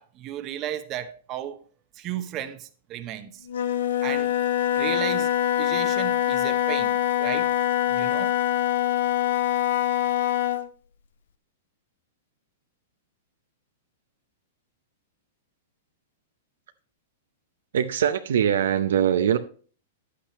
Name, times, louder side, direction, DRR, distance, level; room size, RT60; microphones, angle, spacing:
voice 1, 0.0-1.6 2.0-3.4 4.0-4.4 4.7-5.3 5.6-7.5 7.9-8.3, right 11 dB, 35° right, 0.9 m, -34 dB
Wind instrument woodwind instrument, 3.5-10.7, left 12 dB, 70° left, 0.8 m, -24 dB
voice 2, 17.7-19.4, right 9 dB, 70° right, 0.6 m, -22 dB
9.9 x 8.5 x 3.0 m
hypercardioid pair, 115°, 0 cm